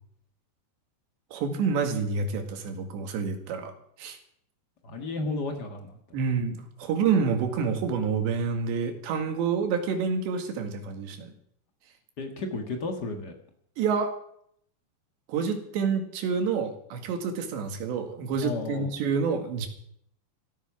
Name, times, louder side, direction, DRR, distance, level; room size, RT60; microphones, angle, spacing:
voice 1, 1.3-3.7 4.0-4.2 6.1-11.3 13.8-14.1 15.3-19.7, right 5 dB, 85° right, 6 dB, 4.2 m, -28 dB
voice 2, 4.8-6.0 12.2-13.3 18.4-18.9, left 3 dB, 75° left, 4 dB, 0.9 m, -33 dB
15.5 x 13.5 x 6.1 m, 0.68 s
omnidirectional pair, 4.9 m